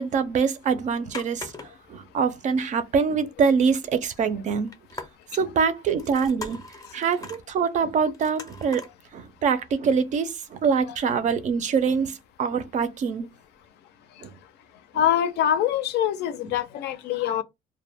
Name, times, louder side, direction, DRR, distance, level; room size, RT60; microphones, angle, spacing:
voice 1, 0.0-4.7 5.3-6.6 6.9-8.8 9.1-13.3 14.2-14.3, right 6 dB, 45° right, 0.4 m, -24 dB
sound 1, 1.1-2.0 2.3-2.4 2.7-2.8 4.7-5.4 5.9-7.4 8.1-8.9 9.4-9.5, left 3 dB, 20° left, 0.5 m, -41 dB
voice 2, 14.9-17.4, left 10 dB, 80° left, 0.4 m, -24 dB
2.2 x 2.0 x 3.4 m
cardioid pair, 110°, 17 cm